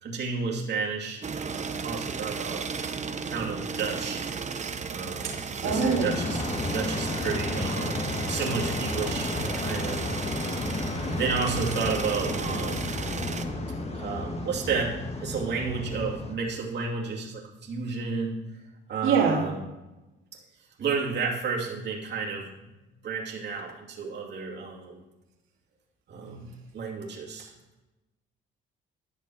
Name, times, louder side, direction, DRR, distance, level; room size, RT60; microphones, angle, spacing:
voice 1, 0.0-2.6 3.3-4.2 4.9-6.4 6.7-10.1 11.1-12.9 13.9-18.4 18.9-19.7 20.8-22.7 23.0-25.0 26.1-27.5, right 5 dB, 60° right, -3 dB, 2.6 m, -32 dB
sound 1, 1.2-13.4, right 5 dB, 35° right, 0.9 m, -35 dB
sound 2, 5.6-16.4, left 2 dB, 30° left, 1.7 m, -32 dB
voice 2, 5.6-6.2 19.0-19.4, right 5 dB, 85° right, 0 dB, 2.6 m, -24 dB
12.0 x 6.6 x 6.2 m, 1.0 s
cardioid pair, 90°, 20 cm